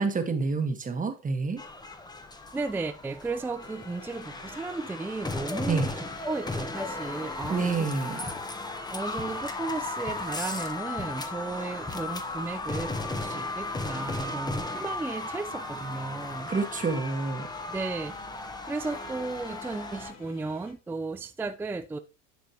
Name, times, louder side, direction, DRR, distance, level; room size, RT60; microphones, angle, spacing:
voice 1, 0.0-1.6 5.7-5.9 7.5-8.3 16.5-17.5, right 4 dB, 20° right, 1.4 m, -28 dB
sound 1, 1.6-20.1, left 2 dB, 10° left, 1.1 m, -36 dB
voice 2, 2.5-8.4 8.9-16.5 17.7-18.2 18.7-22.0, right 3 dB, 5° right, 0.4 m, -35 dB
sound 2, 3.6-20.7, left 5 dB, 50° left, 3.4 m, -52 dB
10.5 x 5.1 x 3.0 m
hypercardioid pair, 95°, 36 cm